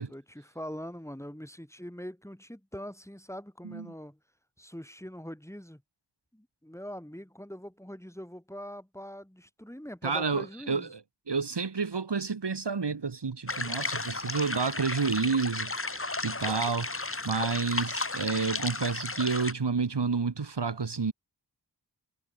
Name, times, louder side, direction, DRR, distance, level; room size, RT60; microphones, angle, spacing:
voice 1, 0.1-4.2 4.6-5.8 6.3-10.9, equal, 5° left, 7.4 m, -43 dB
voice 2, 10.0-11.0 11.3-16.9 17.2-21.1, right 5 dB, 75° right, 2.4 m, -30 dB
sound 1, 13.5-19.5, left 3 dB, 30° left, 2.0 m, -34 dB
wide cardioid pair, 50°, 41 cm